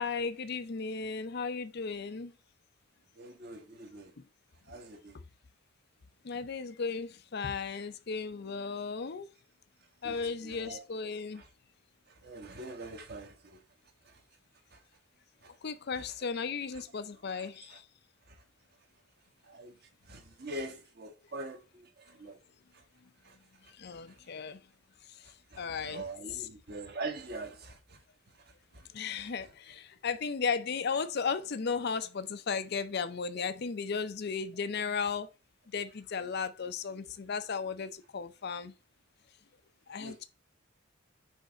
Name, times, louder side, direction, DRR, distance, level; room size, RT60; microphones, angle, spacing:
voice 1, 0.0-2.3 6.2-9.3 10.0-11.4 15.6-17.9 23.7-24.6 25.1-26.0 26.3-26.5 28.9-35.3 35.7-38.7 39.9-40.2, left 5 dB, 50° left, 0.5 m, -35 dB
voice 2, 3.2-4.1 4.6-5.2 10.0-10.8 11.3-11.5 12.1-13.6 14.0-14.2 14.7-14.8 15.4-15.5 16.0-16.1 16.7-16.8 17.3-17.8 18.3-18.4 19.4-19.8 20.0-22.4 22.7-22.8 23.2-23.4 23.6-23.7 24.1-24.2 25.5-28.0 28.3-28.9 29.2-29.5 40.0-40.2, right 2 dB, 45° right, 1.2 m, -44 dB
6.3 x 3.3 x 4.9 m
head